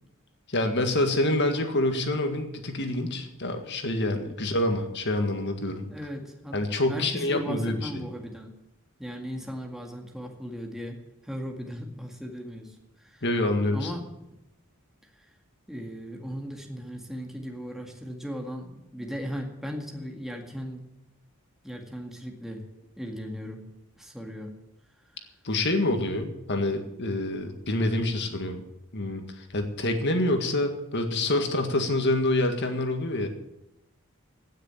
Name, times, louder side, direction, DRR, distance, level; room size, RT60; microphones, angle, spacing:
voice 1, 0.5-5.9 6.5-8.0 13.2-13.9 25.4-28.6 28.9-33.3, left 1 dB, 55° left, 6 dB, 1.8 m, -27 dB
voice 2, 5.9-6.6 6.9-8.5 9.0-12.7 13.0-13.2 13.7-14.1 15.7-20.8 21.6-22.6 23.0-23.6 24.0-24.5, equal, ahead, 1 dB, 2.0 m, -37 dB
16.0 x 6.6 x 8.7 m, 0.88 s
head